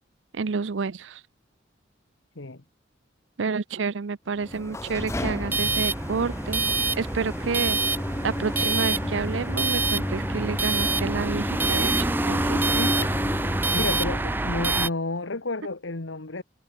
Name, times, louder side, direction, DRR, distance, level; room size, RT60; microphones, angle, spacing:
voice 1, 0.3-1.2 3.4-6.6 6.9-7.8 8.2-12.7, right 5 dB, 80° right, 0.6 m, -29 dB
sound 1, 4.4-14.7, left 1 dB, 15° left, 0.7 m, -32 dB
sound 2, 5.0-14.9, right 3 dB, 10° right, 0.4 m, -27 dB
voice 2, 12.7-16.4, left 2 dB, 90° left, 1.7 m, -32 dB
head